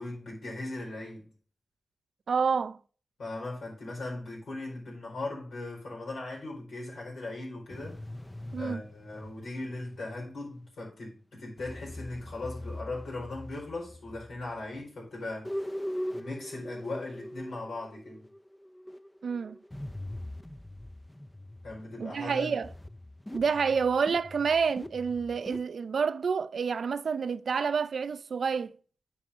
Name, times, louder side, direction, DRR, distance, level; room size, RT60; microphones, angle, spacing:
voice 1, 0.0-1.3 3.2-8.0 8.6-15.6 16.1-18.3 21.6-22.6, left 2 dB, 90° left, 4.6 m, -39 dB
voice 2, 2.3-2.8 8.5-8.8 19.2-19.6 22.0-22.7 23.3-28.8, right 5 dB, 75° right, 0.4 m, -28 dB
sound 1, 7.7-10.3 11.6-14.8 15.4-21.9 22.6-25.6, left 1 dB, 15° left, 0.5 m, -42 dB
9.7 x 4.8 x 3.7 m
cardioid pair, 45°, 0 cm